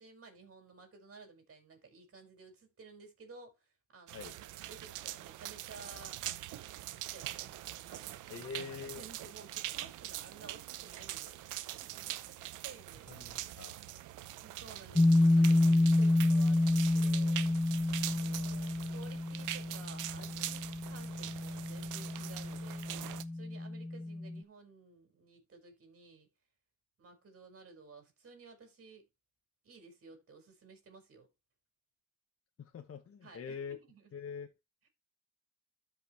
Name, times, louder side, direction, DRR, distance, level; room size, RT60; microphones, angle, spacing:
voice 1, 0.0-6.2 6.9-7.6 7.9-13.6 14.4-17.8 18.0-26.3 27.0-29.1 29.6-31.3 33.2-34.1, right 4 dB, 50° right, 4.8 m, -55 dB
sound 1, 4.1-23.2, right 14 dB, 90° right, 0.8 m, -43 dB
voice 2, 8.3-9.0 13.1-13.8 18.1-18.6 32.6-33.8 34.1-34.5, left 6 dB, 50° left, 1.4 m, -44 dB
sound 2, 14.9-24.4, left 2 dB, 5° left, 0.4 m, -29 dB
13.0 x 5.7 x 3.1 m
cardioid pair, 90°, 30 cm